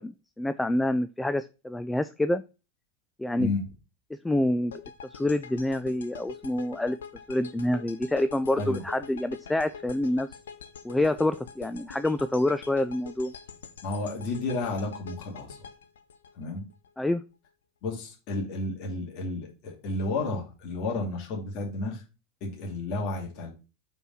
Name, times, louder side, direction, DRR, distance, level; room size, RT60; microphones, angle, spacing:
voice 1, 0.0-2.4 3.2-3.5 4.2-4.7 5.1-7.0 7.3-10.3 10.8-13.3 17.0-17.2, left 1 dB, 10° left, 12 dB, 0.4 m, -27 dB
sound 1, 4.7-16.9, left 7 dB, 70° left, 0.8 m, -45 dB
voice 2, 13.8-15.6 16.3-16.7 17.8-22.0 22.4-23.5, left 2 dB, 50° left, 0 dB, 2.5 m, -32 dB
5.4 x 4.5 x 5.5 m, 0.31 s
figure-of-eight pair, 80°, 0 cm